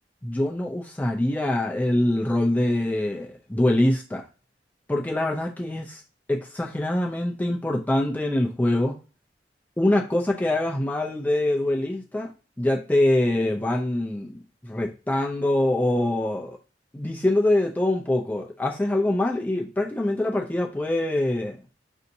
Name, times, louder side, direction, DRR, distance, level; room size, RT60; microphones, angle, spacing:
voice 1, 0.2-4.2 4.9-6.0 6.3-9.0 9.8-12.3 12.6-16.5 16.9-21.6, left 1 dB, 10° left, 0.4 m, -24 dB
5.6 x 2.6 x 2.6 m
head